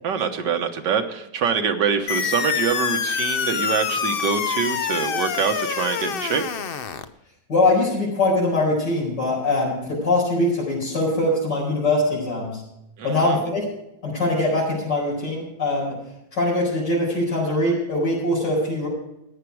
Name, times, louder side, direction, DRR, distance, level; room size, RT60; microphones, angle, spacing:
voice 1, 0.0-6.4 13.0-13.4, right 6 dB, 90° right, 5 dB, 1.8 m, -24 dB
sound 1, 2.1-7.1, left 7 dB, 60° left, 0.6 m, -26 dB
voice 2, 7.5-12.6 13.0-13.6 14.0-16.0 16.3-18.9, left 2 dB, 80° left, -5 dB, 5.4 m, -22 dB
15.0 x 9.9 x 4.7 m, 0.86 s
omnidirectional pair, 1.8 m